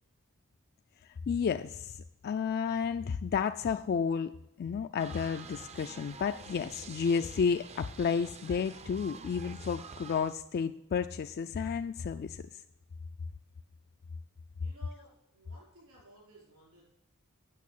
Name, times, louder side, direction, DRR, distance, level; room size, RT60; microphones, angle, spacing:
voice 1, 1.0-12.4, left 6 dB, 45° left, 9 dB, 0.3 m, -32 dB
sound 1, 5.0-10.4, right 5 dB, 30° right, 0.5 m, -48 dB
voice 2, 14.6-16.8, right 1 dB, 80° right, -2 dB, 4.8 m, -57 dB
8.4 x 6.4 x 8.4 m, 0.86 s
head